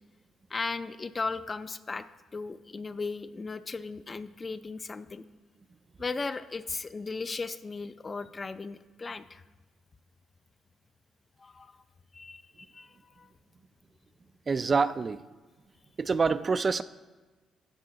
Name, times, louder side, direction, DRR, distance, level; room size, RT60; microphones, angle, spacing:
voice 1, 0.5-2.1 2.3-5.2 6.0-9.4 11.4-11.8 12.1-13.3, left 4 dB, 30° left, 12 dB, 0.5 m, -36 dB
voice 2, 14.5-15.2 16.0-16.8, right 4 dB, 35° right, 13 dB, 0.3 m, -26 dB
14.0 x 5.5 x 3.8 m, 1.3 s
cardioid pair, 90°, 0 cm